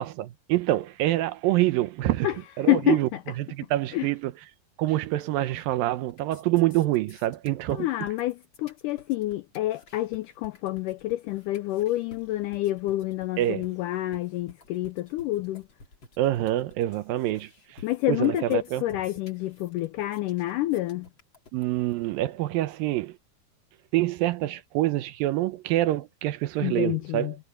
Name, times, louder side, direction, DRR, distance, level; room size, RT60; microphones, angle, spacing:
voice 1, 0.0-2.3 2.6-3.1 3.4-4.3 4.8-7.9 13.4-13.7 16.2-17.8 18.1-18.8 21.5-23.1 23.9-27.4, right 15 dB, 75° right, 2.5 m, -26 dB
voice 2, 2.6-3.0 3.9-4.1 7.7-15.6 17.8-21.1 26.6-27.3, left 16 dB, 90° left, 1.8 m, -28 dB
sound 1, 5.3-5.8 6.0-22.0, left 3 dB, 30° left, 3.6 m, -53 dB
omnidirectional pair, 4.3 m